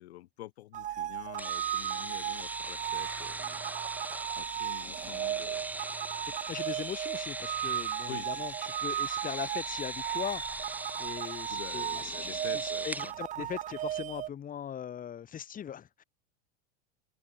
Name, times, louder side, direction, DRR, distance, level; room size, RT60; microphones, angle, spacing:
voice 1, 0.0-4.0 4.3-5.7 8.1-8.3 11.5-13.5, left 15 dB, 85° left, 2.1 m, -47 dB
sound 1, 0.7-14.3, right 12 dB, 25° right, 0.5 m, -36 dB
sound 2, 1.4-13.1, right 2 dB, 5° right, 1.8 m, -39 dB
voice 2, 6.5-10.7 11.0-16.0, left 9 dB, 25° left, 2.6 m, -40 dB
open air
supercardioid pair, 125°, 31 cm